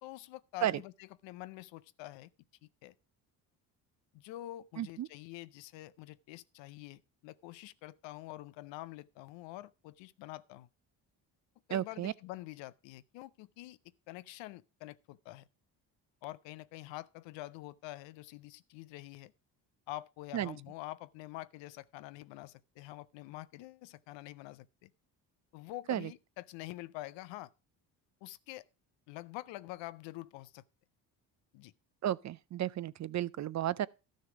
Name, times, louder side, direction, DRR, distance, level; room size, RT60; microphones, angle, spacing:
voice 1, 0.0-2.3 2.6-2.9 4.1-10.7 11.7-13.8 14.1-15.4 16.2-19.3 19.9-24.9 25.5-27.5 28.2-28.6 29.1-30.6 31.5-31.7, left 17 dB, 85° left, 0.6 m, -46 dB
voice 2, 4.8-5.1 11.7-12.1 20.3-20.6 25.9-26.1 32.0-33.9, right 12 dB, 40° right, 0.4 m, -33 dB
12.5 x 6.5 x 4.8 m
supercardioid pair, 70°, 44 cm